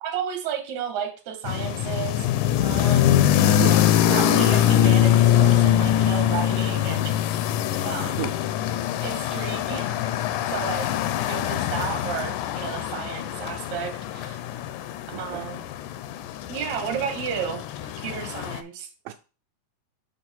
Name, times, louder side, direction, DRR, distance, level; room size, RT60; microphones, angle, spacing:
voice 1, 0.0-2.3 2.6-3.1 4.1-7.1 7.8-8.2 9.0-10.0 10.5-10.9 11.3-14.4 15.2-15.6 16.5-18.9, right 8 dB, 60° right, 2.3 m, -32 dB
sound 1, 1.5-18.6, left 11 dB, 85° left, 1.8 m, -23 dB
voice 2, 3.6-4.2 8.1-8.3 15.1-15.5 19.1-19.2, right 14 dB, 85° right, 2.3 m, -33 dB
6.8 x 3.6 x 5.6 m
omnidirectional pair, 4.0 m